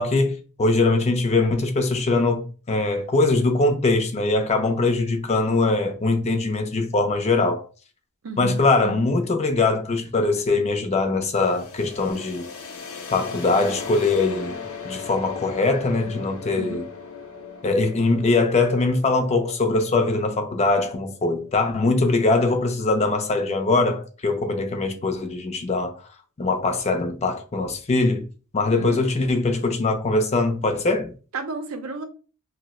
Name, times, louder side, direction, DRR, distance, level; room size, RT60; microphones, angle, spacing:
voice 1, 0.0-7.6 8.4-12.5 13.1-14.6 14.8-16.8 17.6-26.0 26.4-28.2 28.5-31.1, left 3 dB, 30° left, 0.4 m, -22 dB
voice 2, 8.2-9.0 16.5-16.8 28.7-29.0 31.3-32.0, right 3 dB, 65° right, 0.5 m, -33 dB
sound 1, 11.3-23.0, left 5 dB, 80° left, 0.7 m, -38 dB
2.7 x 2.0 x 4.0 m
head